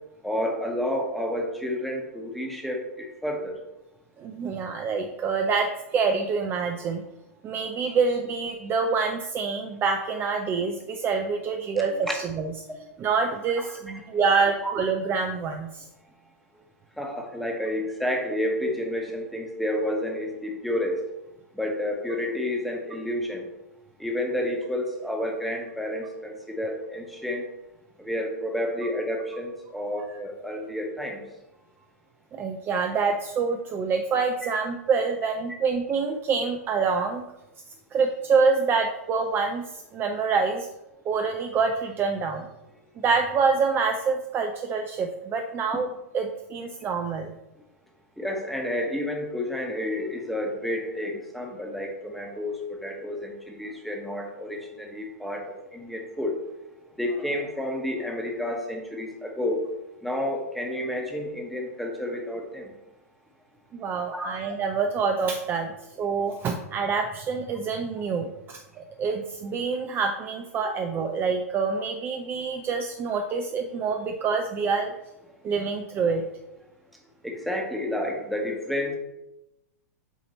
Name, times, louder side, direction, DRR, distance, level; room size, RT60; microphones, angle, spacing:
voice 1, 0.2-3.5 13.6-13.7 13.9-14.4 14.6-14.7 17.0-21.0 21.5-23.5 24.0-27.4 28.0-31.2 48.2-56.3 56.9-59.7 60.0-62.7 64.1-64.3 77.2-79.0, left 1 dB, ahead, 1 dB, 1.1 m, -30 dB
voice 2, 4.2-7.0 7.4-12.5 13.0-15.9 32.3-37.2 37.9-39.6 39.9-40.7 41.1-42.5 43.0-45.9 46.1-47.3 63.7-65.7 66.0-74.9 75.4-76.3, right 5 dB, 25° right, 4 dB, 0.4 m, -26 dB
8.0 x 2.8 x 4.3 m, 0.93 s
hypercardioid pair, 125°, 9 cm